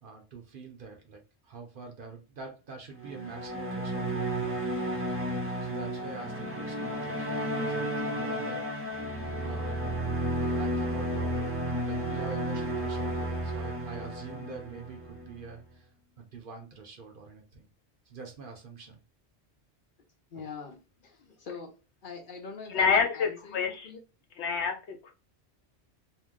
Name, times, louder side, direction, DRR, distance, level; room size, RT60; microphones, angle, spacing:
voice 1, 0.0-4.6 5.6-8.7 9.4-9.7 10.6-11.6 11.8-15.9 16.2-17.7 18.1-19.0, right 4 dB, 55° right, 0.8 m, -45 dB
sound 1, 3.0-15.5, right 1 dB, 20° right, 0.4 m, -32 dB
voice 2, 20.3-24.0, left 5 dB, 55° left, 0.8 m, -44 dB
voice 3, 22.7-23.9 24.4-25.1, left 5 dB, 80° left, 1.0 m, -27 dB
2.8 x 2.1 x 3.5 m
omnidirectional pair, 1.2 m